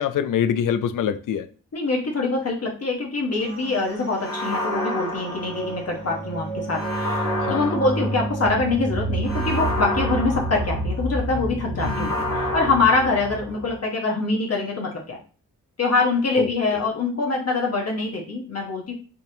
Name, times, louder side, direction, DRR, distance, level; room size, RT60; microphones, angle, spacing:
voice 1, 0.0-1.5 7.4-7.8 11.8-12.1 16.4-16.8, left 8 dB, 70° left, 0.5 m, -25 dB
voice 2, 1.7-15.2 15.8-18.9, left 3 dB, 45° left, 1.0 m, -24 dB
sound 1, 3.4-13.8, right 2 dB, 70° right, 1.5 m, -30 dB
sound 2, 4.2-6.1 6.7-8.5 9.2-11.1 11.8-13.6, left 1 dB, 85° left, 1.2 m, -30 dB
3.9 x 2.5 x 2.7 m
cardioid pair, 50°, 33 cm